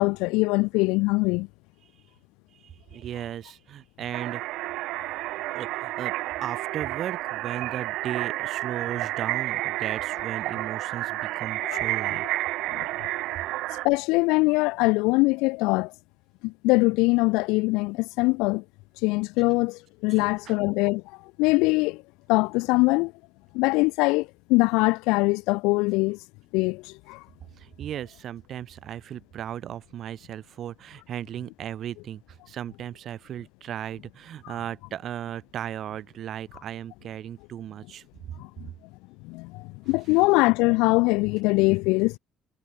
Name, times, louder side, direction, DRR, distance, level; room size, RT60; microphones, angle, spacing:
voice 1, 0.0-1.5 11.6-11.8 12.7-12.9 13.8-15.9 16.4-18.6 19.0-21.0 21.4-22.0 22.3-23.1 23.5-26.2 26.5-27.2 38.4-38.7 39.2-42.2, left 25 dB, 85° left, 2.7 m, -23 dB
voice 2, 2.5-4.4 5.5-6.1 6.4-12.3 20.2-20.6 27.6-38.1, right 10 dB, 55° right, 4.4 m, -36 dB
sound 1, 4.1-13.9, right 18 dB, 75° right, 1.3 m, -30 dB
supercardioid pair, 95°, 0 cm